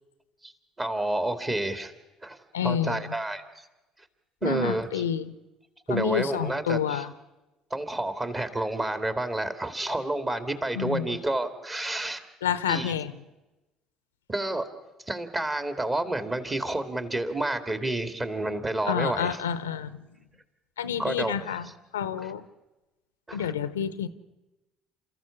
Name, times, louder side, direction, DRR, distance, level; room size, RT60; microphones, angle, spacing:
voice 1, 0.8-1.9 2.2-2.4 2.6-3.4 4.4-5.0 5.9-7.0 7.7-12.2 12.7-12.9 14.3-14.7 15.1-19.4 21.0-21.4 23.3-23.5, right 2 dB, 25° right, 9 dB, 2.3 m, -29 dB
voice 2, 2.5-3.1 4.4-5.3 5.9-7.1 10.7-11.0 12.4-13.1 18.9-20.0 20.8-21.7 21.9-22.4 23.3-24.1, left 8 dB, 85° left, 15 dB, 0.7 m, -29 dB
29.5 x 14.0 x 7.2 m, 1.1 s
hypercardioid pair, 60°, 0 cm